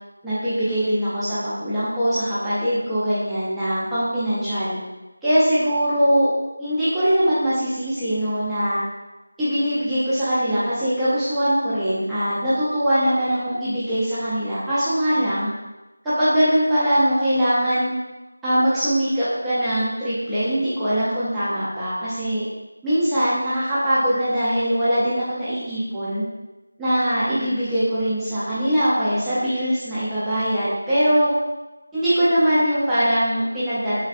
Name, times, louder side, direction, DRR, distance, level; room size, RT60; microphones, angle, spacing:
voice 1, 0.2-4.8 5.2-6.3 6.6-8.8 9.4-15.5 16.0-17.9 18.4-22.4 22.8-26.2 26.8-31.3 31.9-34.0, equal, 5° right, -15 dB, 0.4 m, -22 dB
3.2 x 2.5 x 2.4 m, 1.1 s
figure-of-eight pair, 175°, 0 cm